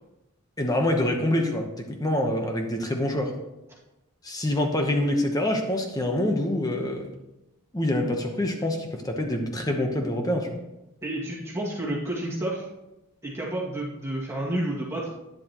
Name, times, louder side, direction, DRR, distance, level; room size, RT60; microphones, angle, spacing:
voice 1, 0.6-3.3 4.2-7.1 7.7-10.6, left 1 dB, 15° left, 3 dB, 1.0 m, -26 dB
voice 2, 11.0-12.7 13.2-15.1, right 1 dB, 15° right, -5 dB, 2.1 m, -30 dB
11.5 x 10.0 x 3.0 m, 0.93 s
head